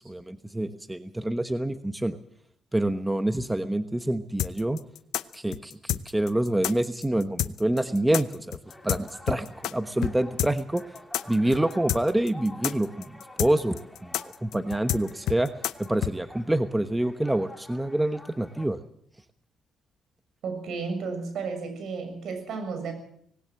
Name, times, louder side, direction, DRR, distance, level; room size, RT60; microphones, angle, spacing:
voice 1, 0.0-2.2 2.7-4.8 5.3-8.6 8.8-10.8 11.3-15.5 15.8-18.8, right 1 dB, 10° right, 9 dB, 1.1 m, -27 dB
sound 1, 4.4-9.7 10.0-10.1 10.4-16.1, left 14 dB, 85° left, 0.7 m, -29 dB
sound 2, 8.6-18.7, left 1 dB, 5° left, 2.8 m, -49 dB
voice 2, 20.4-22.9, right 4 dB, 70° right, 7 dB, 7.1 m, -33 dB
19.0 x 18.0 x 7.7 m, 0.66 s
cardioid pair, 90°, 0 cm